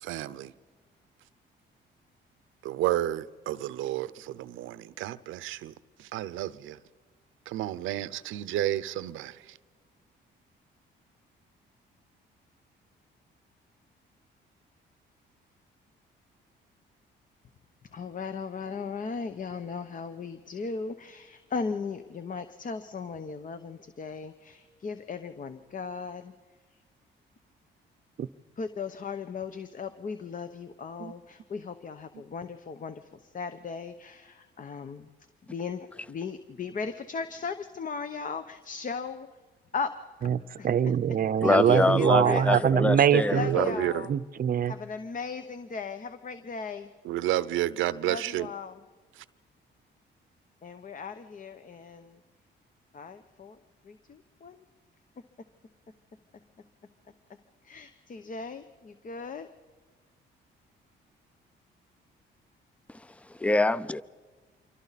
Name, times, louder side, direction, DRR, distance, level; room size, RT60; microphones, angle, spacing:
voice 1, 0.0-0.5 2.6-5.7 6.0-6.8 7.5-9.4 43.4-44.0 47.0-48.5, right 14 dB, 90° right, 0.7 m, -31 dB
voice 2, 17.9-26.3 28.6-35.1 35.5-39.3 39.7-39.9 40.2-40.3 40.6-40.7 41.4-42.6 43.3-44.1 44.8-46.9 48.0-48.8 50.6-52.2 52.9-53.6 53.8-54.6 57.6-59.5, left 5 dB, 40° left, 1.0 m, -37 dB
voice 3, 40.3-43.6 44.1-44.7, right 8 dB, 45° right, 0.7 m, -24 dB
voice 4, 41.4-43.8 62.9-64.0, left 2 dB, 5° left, 0.5 m, -25 dB
27.0 x 24.0 x 4.2 m
cardioid pair, 90°, 20 cm